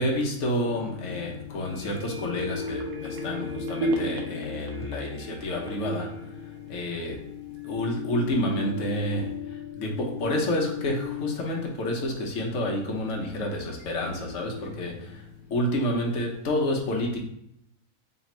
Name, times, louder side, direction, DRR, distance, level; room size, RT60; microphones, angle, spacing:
voice 1, 0.0-7.2 7.6-17.2, left 1 dB, 60° left, 0 dB, 1.1 m, -29 dB
sound 1, 0.6-15.8, left 10 dB, 85° left, 1.1 m, -39 dB
sound 2, 1.6-7.3 7.7-7.8, right 2 dB, 85° right, 1.1 m, -35 dB
3.4 x 2.9 x 4.2 m, 0.76 s
omnidirectional pair, 1.5 m